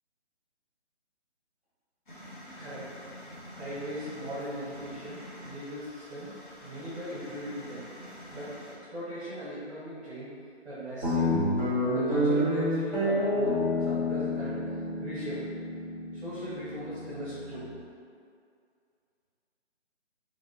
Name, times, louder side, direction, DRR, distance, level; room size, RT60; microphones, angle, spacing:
sound 1, 2.1-8.8, equal, 45° left, 0.7 m, -46 dB
voice 1, 3.5-6.3 6.6-7.8 8.3-8.5 8.9-10.3 10.6-11.3 11.9-14.6 15.0-15.4 16.1-17.6, equal, 10° right, -13 dB, 1.2 m, -38 dB
Guitar, 11.0-17.7, left 1 dB, 5° left, 0.6 m, -29 dB
2.9 x 2.8 x 3.0 m, 2.3 s
figure-of-eight pair, 155°, 35 cm